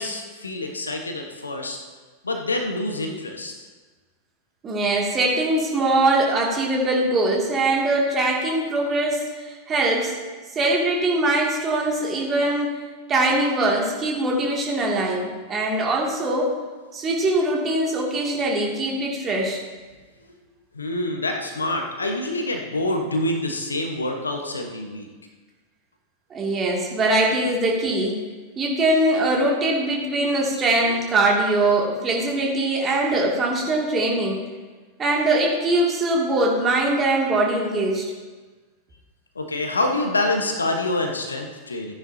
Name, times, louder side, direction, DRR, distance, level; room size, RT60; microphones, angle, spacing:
voice 1, 0.0-1.8 2.2-3.5 20.7-25.1 39.3-41.9, left 2 dB, 75° left, 3 dB, 1.2 m, -26 dB
voice 2, 4.6-10.2 10.5-12.8 13.1-16.5 16.9-19.6 26.3-28.2 28.6-34.4 35.0-38.0, right 2 dB, 25° right, -2 dB, 2.5 m, -22 dB
14.5 x 10.0 x 2.8 m, 1.4 s
figure-of-eight pair, 90°, 0 cm